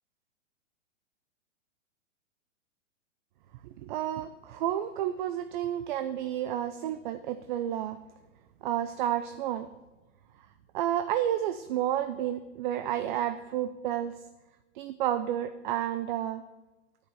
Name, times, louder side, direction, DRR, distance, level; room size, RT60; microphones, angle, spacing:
voice 1, 3.6-8.0 8.6-9.7 10.7-14.2 14.8-16.4, right 11 dB, 40° right, 10 dB, 0.5 m, -31 dB
9.8 x 5.2 x 7.8 m, 1.1 s
hypercardioid pair, 115°, 39 cm